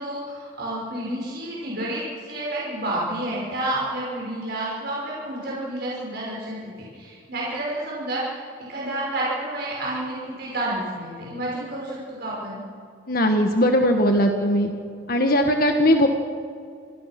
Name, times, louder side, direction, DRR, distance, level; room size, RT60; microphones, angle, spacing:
voice 1, 0.0-8.4 8.7-12.6, right 1 dB, 55° right, -5 dB, 5.7 m, -30 dB
voice 2, 13.1-14.7 15.1-16.1, equal, 50° left, 4 dB, 1.6 m, -19 dB
28.5 x 19.5 x 6.1 m, 2.4 s
head